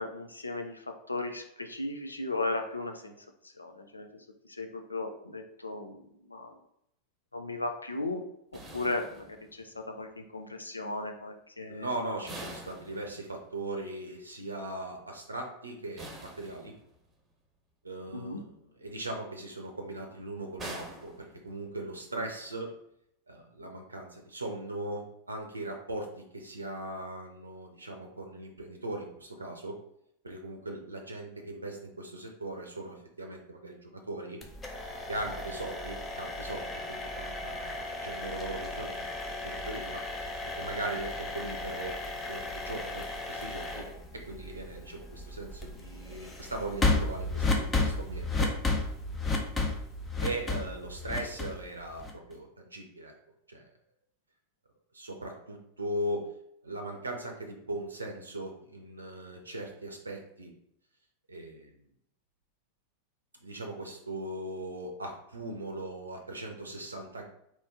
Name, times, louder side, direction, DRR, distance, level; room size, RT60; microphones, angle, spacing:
voice 1, 0.0-3.1 3.4-6.5 7.3-8.2 8.7-11.9 18.1-18.4, left 2 dB, 80° left, 5 dB, 0.5 m, -36 dB
sound 1, 8.5-9.8 12.3-13.6 16.0-17.1 20.6-21.9, right 2 dB, 20° right, 1.0 m, -45 dB
voice 2, 11.7-16.7 17.8-22.7 23.3-29.8 30.2-34.4 35.1-40.0 40.5-42.0 42.3-43.9 44.3-48.5 50.2-53.1 53.5-53.7 54.9-56.3 56.6-60.5 61.3-61.8 63.4-67.3, right 1 dB, 80° right, 3 dB, 0.6 m, -39 dB
sound 2, 34.4-52.3, left 2 dB, 15° left, 0.7 m, -34 dB
4.2 x 2.9 x 3.6 m, 0.75 s
figure-of-eight pair, 90°, 0 cm